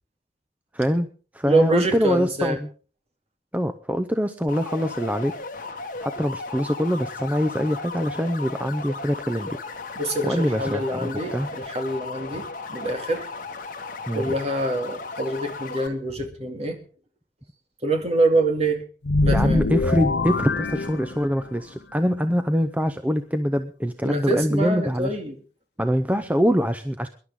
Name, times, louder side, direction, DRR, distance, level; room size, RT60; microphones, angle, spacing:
voice 1, 0.7-1.1 1.3-2.7 3.5-5.4 5.7-9.6 10.2-11.5 14.1-14.3 19.3-25.1 25.8-27.1, equal, 10° right, 9 dB, 0.7 m, -24 dB
voice 2, 1.4-2.6 10.0-13.3 14.1-16.8 17.8-18.8 19.2-19.7 24.0-25.4, right 2 dB, 35° right, 4 dB, 2.5 m, -25 dB
sound 1, 4.5-15.9, left 3 dB, 50° left, 1.5 m, -36 dB
sound 2, 19.0-21.6, left 2 dB, 65° left, 0.7 m, -24 dB
24.0 x 11.5 x 3.7 m, 0.38 s
head